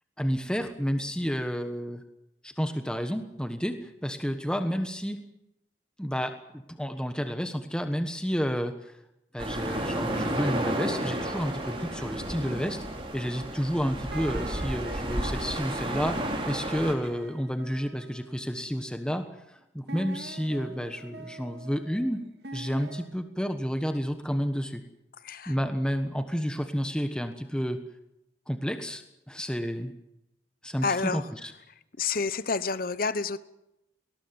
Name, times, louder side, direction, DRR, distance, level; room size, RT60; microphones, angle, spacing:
voice 1, 0.2-2.0 2.4-5.2 6.0-8.9 9.3-12.8 13.1-22.2 22.5-24.8 25.5-27.8 28.5-29.9 30.6-30.9 31.1-31.5, equal, 5° left, 7 dB, 1.3 m, -30 dB
sound 1, 9.4-16.9, right 1 dB, 30° right, 4.2 m, -32 dB
sound 2, 14.1-19.1 19.9-23.1, right 3 dB, 60° right, 2.4 m, -45 dB
voice 2, 25.2-25.6 30.8-31.2 32.0-33.4, left 4 dB, 50° left, 15 dB, 0.9 m, -29 dB
20.5 x 18.5 x 9.5 m, 0.88 s
head